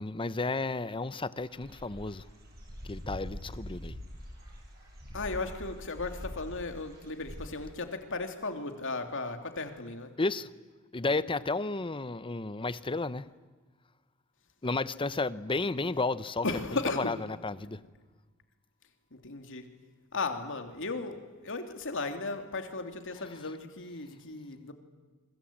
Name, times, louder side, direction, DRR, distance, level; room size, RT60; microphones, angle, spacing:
voice 1, 0.0-2.2 2.8-4.0 10.2-10.5 10.9-13.3 14.6-16.4 17.0-17.2 17.4-17.8, left 3 dB, 25° left, 0.8 m, -32 dB
Dog / Bird, 1.4-7.7, equal, 50° right, 7.9 m, -44 dB
voice 2, 5.1-10.1 16.4-17.1 19.1-19.7 20.1-24.7, left 3 dB, 65° left, 2.9 m, -36 dB
27.5 x 24.5 x 8.8 m
head